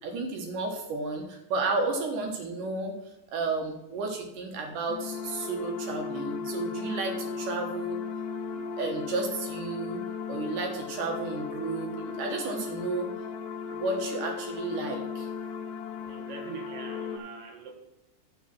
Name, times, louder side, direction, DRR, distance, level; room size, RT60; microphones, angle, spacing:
voice 1, 0.0-2.9 3.3-8.0 8.5-10.0 10.3-13.1 13.7-15.3, right 3 dB, 75° right, 3 dB, 2.7 m, -32 dB
sound 1, 4.9-17.2, left 5 dB, 90° left, 1.5 m, -36 dB
voice 2, 16.0-17.7, right 5 dB, 55° right, 2 dB, 2.2 m, -43 dB
11.0 x 5.0 x 5.8 m, 0.93 s
omnidirectional pair, 3.7 m